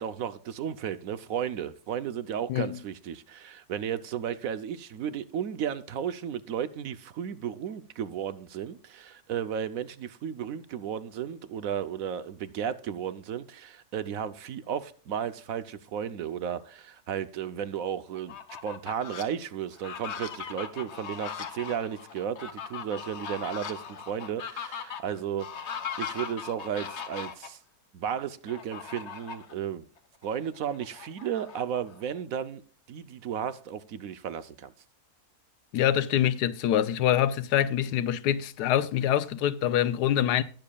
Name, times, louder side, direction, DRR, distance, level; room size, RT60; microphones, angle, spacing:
voice 1, 0.0-18.4 18.6-25.7 26.0-27.6 27.9-29.8 30.2-32.6 32.9-34.7, right 8 dB, 65° right, 1.0 m, -34 dB
Fowl, 18.1-19.2 19.7-27.5 28.5-29.5 30.0-30.1 30.4-32.2, left 7 dB, 50° left, 1.2 m, -39 dB
voice 2, 35.7-40.4, left 11 dB, 85° left, 1.2 m, -25 dB
19.5 x 6.9 x 2.3 m
omnidirectional pair, 1.7 m